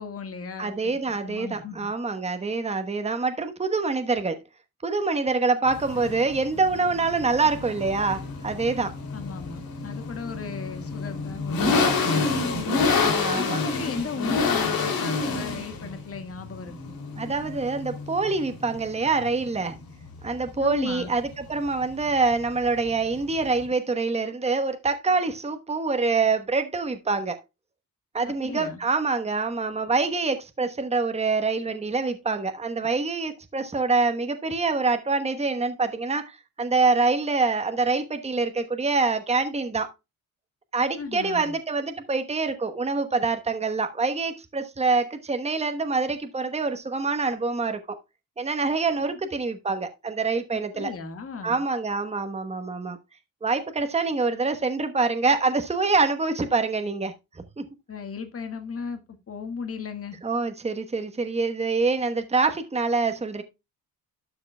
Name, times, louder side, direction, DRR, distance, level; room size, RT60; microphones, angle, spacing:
voice 1, 0.0-0.9 1.2-1.9 9.1-12.8 13.3-17.0 20.6-21.1 28.2-28.8 41.0-41.5 49.0-49.1 50.5-51.6 57.9-59.0 59.3-60.2, left 5 dB, 40° left, 1.7 m, -36 dB
voice 2, 0.6-4.4 4.8-8.9 13.0-13.6 17.2-19.8 20.2-27.4 28.1-39.9 40.7-48.0 48.4-50.9 51.4-53.0 53.4-57.1 57.6-57.7 60.2-63.4, right 4 dB, 20° right, 1.1 m, -25 dB
sound 1, 5.7-23.7, left 4 dB, 80° left, 3.0 m, -28 dB
12.0 x 6.5 x 2.3 m
cardioid pair, 105°, 35 cm